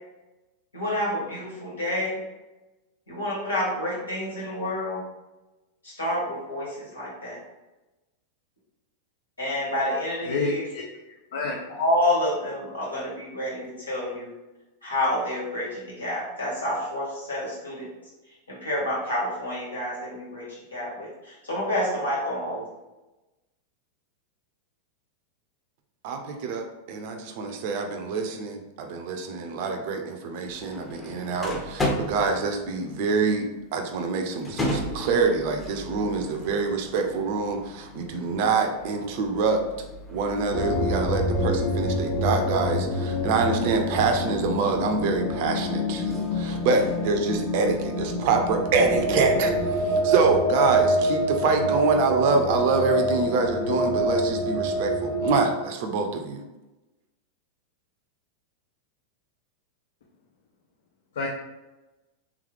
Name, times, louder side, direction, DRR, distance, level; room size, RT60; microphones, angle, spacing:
voice 1, 0.7-2.2 3.1-5.0 5.8-7.4 9.4-10.7 11.8-14.3 14.8-17.9 18.5-22.6, left 1 dB, 75° left, -5 dB, 1.5 m, -28 dB
voice 2, 10.2-10.8 11.3-11.6 61.1-61.3, left 3 dB, 60° left, -1 dB, 0.5 m, -28 dB
voice 3, 26.0-39.6 40.1-56.4, right 4 dB, 50° right, 5 dB, 0.5 m, -25 dB
sound 1, 30.4-49.1, left 1 dB, 15° left, 0.7 m, -37 dB
sound 2, 40.5-55.5, equal, 35° left, 1.1 m, -26 dB
3.5 x 3.1 x 3.3 m, 1.1 s
figure-of-eight pair, 90°, 0 cm